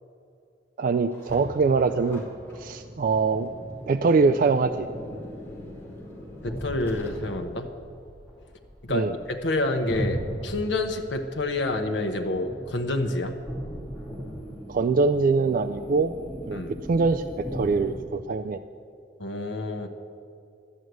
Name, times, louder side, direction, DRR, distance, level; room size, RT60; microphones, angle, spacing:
voice 1, 0.8-2.2 2.6-3.5 3.9-4.9 8.9-9.1 14.7-16.1 16.5-16.6 16.9-18.6, right 4 dB, 50° right, 9 dB, 0.3 m, -23 dB
Car, 1.1-7.6, equal, 10° left, 2.8 m, -42 dB
sound 1, 4.6-18.0, equal, 5° right, 2.5 m, -38 dB
voice 2, 6.4-7.7 8.8-13.4 16.5-16.8 19.2-19.9, left 2 dB, 80° left, 5 dB, 0.9 m, -28 dB
12.5 x 6.3 x 9.3 m, 2.5 s
head